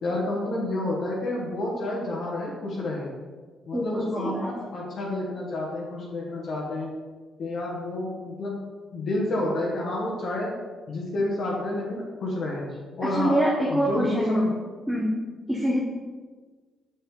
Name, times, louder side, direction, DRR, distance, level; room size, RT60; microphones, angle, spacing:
voice 1, 0.0-3.1 3.7-6.9 7.4-8.6 8.9-10.5 10.9-12.6 13.0-13.4 13.7-14.5, left 1 dB, 60° left, -4 dB, 1.5 m, -29 dB
voice 2, 3.7-4.5 13.0-14.4 14.9-15.2 15.5-15.8, equal, 5° right, -2 dB, 1.0 m, -25 dB
6.4 x 5.9 x 3.8 m, 1.4 s
cardioid pair, 90°, 0 cm